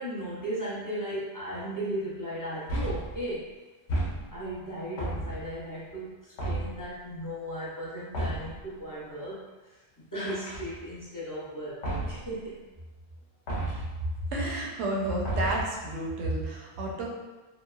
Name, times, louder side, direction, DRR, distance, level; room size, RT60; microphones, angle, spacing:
voice 1, 0.0-3.5 4.3-9.4 10.1-12.6, right 1 dB, 25° left, -10 dB, 0.5 m, -36 dB
sound 1, 2.7-3.2 3.9-4.5 5.0-5.6 6.4-6.9 8.1-8.6 10.2-11.0 11.8-12.3 13.5-14.0 15.3-15.8, right 1 dB, 85° left, 1.0 m, -32 dB
voice 2, 14.3-17.1, right 1 dB, 80° right, -2 dB, 0.9 m, -31 dB
3.0 x 2.1 x 2.2 m, 1.2 s
omnidirectional pair, 1.2 m